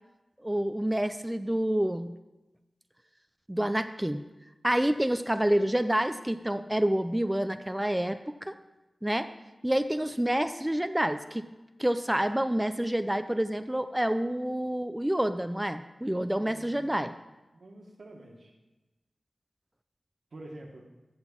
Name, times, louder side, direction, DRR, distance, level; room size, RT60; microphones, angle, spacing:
voice 1, 0.4-2.1 3.5-4.2 4.6-8.5 9.0-9.3 9.6-11.5 11.8-17.1, right 1 dB, 10° right, 10 dB, 0.5 m, -28 dB
voice 2, 16.3-17.2 17.5-18.5 20.3-20.9, right 1 dB, 80° right, 1 dB, 1.5 m, -48 dB
7.7 x 6.1 x 7.1 m, 1.1 s
wide cardioid pair, 60°, 0 cm